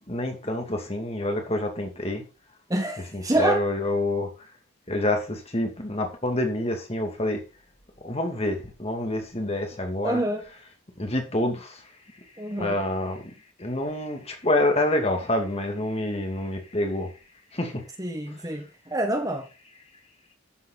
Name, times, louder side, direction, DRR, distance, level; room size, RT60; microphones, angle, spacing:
voice 1, 0.1-2.2 3.1-4.5 4.9-7.4 8.0-10.2 11.0-12.2 12.6-17.1 17.5-17.8 18.3-18.5, left 1 dB, 30° left, 2.5 m, -27 dB
voice 2, 2.7-3.6 10.0-10.4 12.4-12.8 18.0-19.5, right 1 dB, 15° right, 1.3 m, -27 dB
12.5 x 7.7 x 4.0 m
head